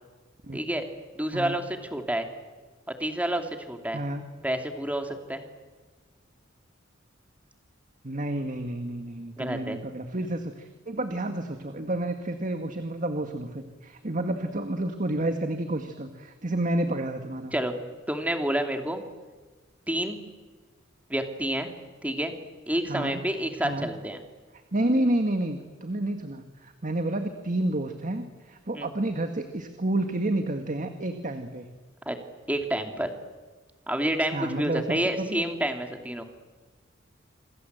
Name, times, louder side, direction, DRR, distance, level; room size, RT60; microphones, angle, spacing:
voice 1, 0.5-0.8 1.1-1.6 1.9-2.3 2.9-4.0 4.4-5.4 9.4-9.8 17.5-17.8 18.1-19.0 19.9-20.2 21.1-21.7 22.0-22.3 22.7-24.2 28.7-28.9 32.1-32.2 32.5-33.1 33.9-36.2, right 1 dB, 5° right, 5 dB, 2.7 m, -29 dB
voice 2, 3.9-4.3 8.0-17.6 22.9-23.2 23.6-23.9 24.7-31.7 34.3-35.4, right 1 dB, 40° right, 7 dB, 1.7 m, -30 dB
27.0 x 26.5 x 8.1 m, 1.3 s
head